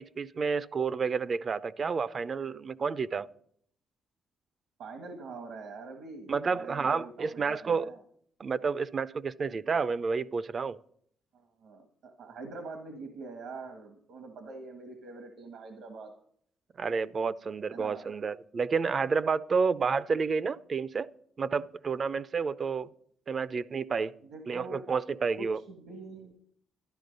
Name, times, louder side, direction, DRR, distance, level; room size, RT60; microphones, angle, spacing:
voice 1, 0.0-3.3 6.3-7.9 8.4-10.8 16.8-21.1 21.4-22.9 23.3-24.1 24.5-25.6, right 5 dB, 40° right, 0.5 m, -30 dB
voice 2, 4.8-8.0 11.3-16.1 17.7-18.0 24.3-24.8 25.3-26.4, right 3 dB, 80° right, 1.5 m, -44 dB
12.5 x 11.0 x 5.3 m
cardioid pair, 90°, 0 cm